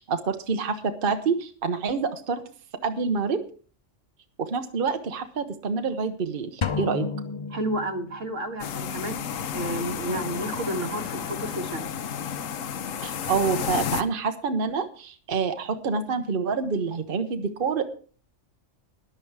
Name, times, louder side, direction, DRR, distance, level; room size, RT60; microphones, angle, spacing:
voice 1, 0.0-2.4 2.8-3.4 4.4-7.1 13.0-17.9, right 5 dB, 45° right, 7 dB, 1.1 m, -27 dB
sound 1, 6.6-8.4, left 5 dB, 45° left, 0.3 m, -31 dB
voice 2, 7.5-9.2 9.5-11.9, right 1 dB, 75° right, 4 dB, 2.0 m, -31 dB
sound 2, 8.6-14.0, left 8 dB, 80° left, 1.2 m, -32 dB
13.5 x 10.5 x 4.7 m, 0.42 s
omnidirectional pair, 1.3 m